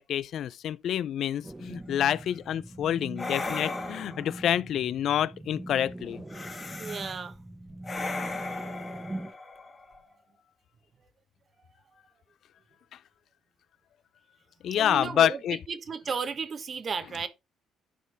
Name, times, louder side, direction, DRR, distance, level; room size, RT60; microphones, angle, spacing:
voice 1, 0.0-6.2 14.6-15.6, left 10 dB, 65° left, 0.4 m, -28 dB
sound 1, 1.4-9.3, right 1 dB, 15° right, 1.2 m, -41 dB
sound 2, 2.0-2.3 3.2-4.4 6.3-7.2 7.8-10.1, left 3 dB, 30° left, 2.1 m, -37 dB
voice 2, 6.8-7.4 14.7-17.3, right 5 dB, 45° right, 1.1 m, -34 dB
11.0 x 4.5 x 3.4 m
supercardioid pair, 70°, 0 cm